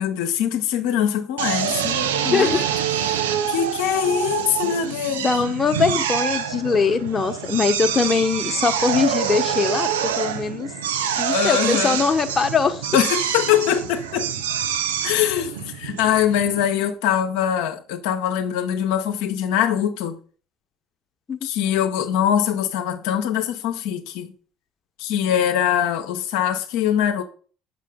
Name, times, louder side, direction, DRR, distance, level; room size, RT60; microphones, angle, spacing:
voice 1, 0.0-2.6 3.5-5.3 11.3-12.0 12.9-14.3 15.0-20.2 21.4-24.3 25.0-27.2, left 9 dB, 75° left, 0.7 m, -23 dB
Drill, 1.4-16.7, right 8 dB, 85° right, 0.6 m, -26 dB
voice 2, 5.1-10.7 11.2-12.9 21.3-21.4, left 5 dB, 30° left, 0.9 m, -21 dB
7.3 x 6.2 x 3.6 m
hypercardioid pair, 60°, 0 cm